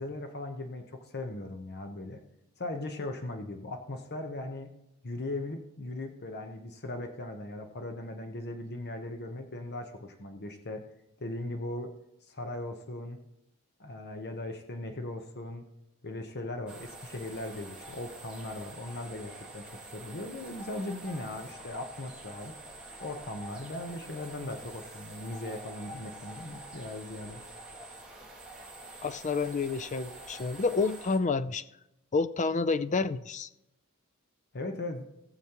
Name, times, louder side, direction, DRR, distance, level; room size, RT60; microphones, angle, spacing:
voice 1, 0.0-2.2 2.6-4.7 5.0-10.8 11.2-11.9 12.3-13.2 13.8-15.6 16.0-19.6 19.9-22.5 23.0-27.4 34.5-35.1, left 2 dB, 50° left, 1.0 m, -38 dB
sound 1, 16.7-31.2, right 2 dB, 5° right, 2.3 m, -47 dB
voice 2, 29.0-31.6 32.1-33.5, left 4 dB, 35° left, 0.4 m, -29 dB
19.0 x 7.1 x 3.0 m
head